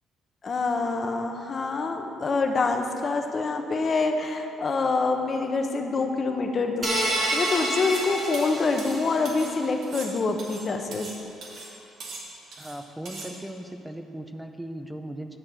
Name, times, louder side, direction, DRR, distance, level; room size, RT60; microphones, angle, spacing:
voice 1, 0.4-7.0 7.3-11.1, left 3 dB, 35° left, 4 dB, 0.8 m, -26 dB
sound 1, 6.8-9.3, right 1 dB, 45° right, 2.3 m, -28 dB
sound 2, 7.8-8.1 8.3-9.5 9.8-11.2 11.4-11.7 12.0-12.8 13.1-13.3, right 3 dB, 65° right, 1.8 m, -40 dB
voice 2, 12.6-15.4, right 1 dB, 5° right, 6 dB, 0.5 m, -38 dB
9.8 x 4.4 x 7.5 m, 2.8 s
cardioid pair, 110°, 0 cm